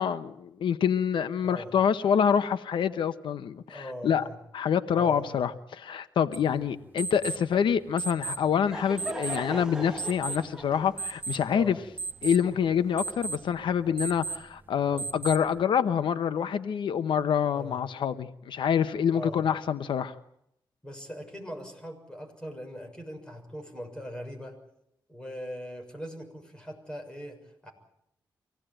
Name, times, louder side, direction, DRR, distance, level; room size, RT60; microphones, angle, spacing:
voice 1, 0.0-4.2 4.5-11.8 12.2-20.2, left 8 dB, 90° left, 11 dB, 0.9 m, -26 dB
voice 2, 3.7-4.4 4.9-5.4 9.6-9.9 11.5-11.8 14.9-15.1 17.5-17.8 19.1-19.4 20.8-24.6 25.1-27.7, equal, 10° left, 2 dB, 6.6 m, -40 dB
sound 1, 6.3-15.6, right 4 dB, 25° right, 1.4 m, -39 dB
Laughter / Crowd, 8.3-13.0, right 2 dB, 10° right, 2.1 m, -40 dB
25.0 x 17.5 x 9.0 m, 0.77 s
wide cardioid pair, 110°, 8 cm